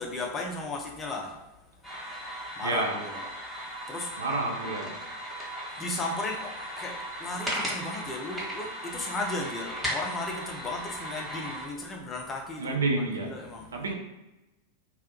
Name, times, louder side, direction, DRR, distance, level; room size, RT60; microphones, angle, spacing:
voice 1, 0.0-1.4 2.6-3.2 3.9-4.2 5.7-13.8, left 2 dB, 20° left, 0 dB, 0.5 m, -35 dB
sound 1, 1.8-11.7, equal, 5° right, 0.8 m, -37 dB
voice 2, 2.6-3.0 4.2-4.9 12.6-13.3 13.7-13.9, right 3 dB, 70° right, 1 dB, 0.4 m, -29 dB
2.3 x 2.1 x 2.8 m, 1.0 s
figure-of-eight pair, 90°, 0 cm